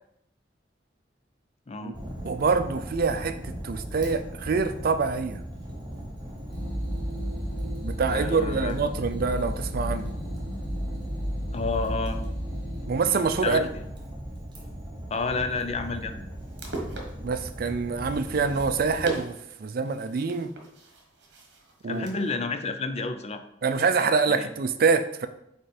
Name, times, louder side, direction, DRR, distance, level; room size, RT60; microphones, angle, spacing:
voice 1, 1.7-2.0 8.1-8.8 11.5-12.2 13.4-13.7 15.1-16.2 21.9-23.4 24.3-24.5, left 3 dB, 35° left, 8 dB, 0.5 m, -30 dB
Fire, 1.9-19.1, equal, 25° right, 1.2 m, -39 dB
voice 2, 2.2-5.4 7.8-10.1 12.9-13.7 17.2-20.5 21.8-22.1 23.6-25.3, right 4 dB, 55° right, 10 dB, 0.4 m, -25 dB
sound 1, 6.5-12.9, equal, 85° left, 2.2 m, -32 dB
sound 2, 16.3-22.3, right 2 dB, 70° right, 1.2 m, -42 dB
5.3 x 4.4 x 4.2 m, 0.78 s
head